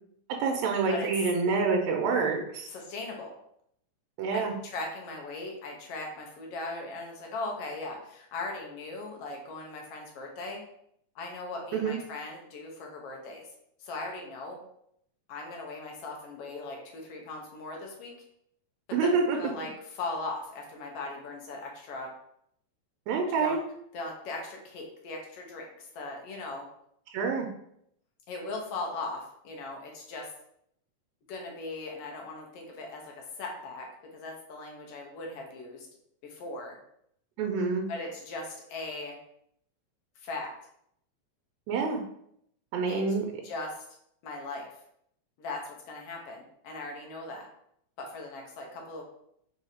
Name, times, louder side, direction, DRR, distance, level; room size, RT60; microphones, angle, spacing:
voice 1, 0.4-2.7 4.2-4.5 11.7-12.0 18.9-19.4 23.1-23.6 27.1-27.5 37.4-37.8 41.7-42.0 42.7-43.3, right 4 dB, 80° right, 2 dB, 1.9 m, -27 dB
voice 2, 2.7-3.3 4.6-10.6 11.1-13.4 13.8-14.6 15.3-18.1 19.0-22.1 23.4-23.6 23.9-26.6 28.3-30.3 31.3-33.1 33.4-33.9 34.1-35.9 36.2-36.8 37.9-39.2 40.2-40.5 42.9-43.0 43.4-43.8 44.2-44.6 45.4-47.4 48.0-49.0, left 2 dB, 70° left, 0 dB, 1.6 m, -39 dB
5.0 x 2.4 x 4.2 m, 0.71 s
omnidirectional pair, 3.3 m